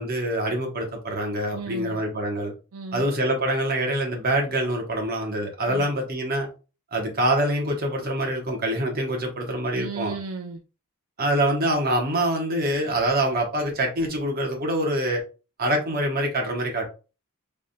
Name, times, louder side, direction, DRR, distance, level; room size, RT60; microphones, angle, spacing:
voice 1, 0.0-2.5 2.9-6.5 6.9-10.1 11.2-15.2 15.6-16.8, right 1 dB, 45° right, 1.1 m, -25 dB
voice 2, 1.5-2.0 2.7-3.1 5.7-5.9 9.7-10.6, right 4 dB, 75° right, 0.5 m, -35 dB
4.0 x 3.4 x 2.2 m
head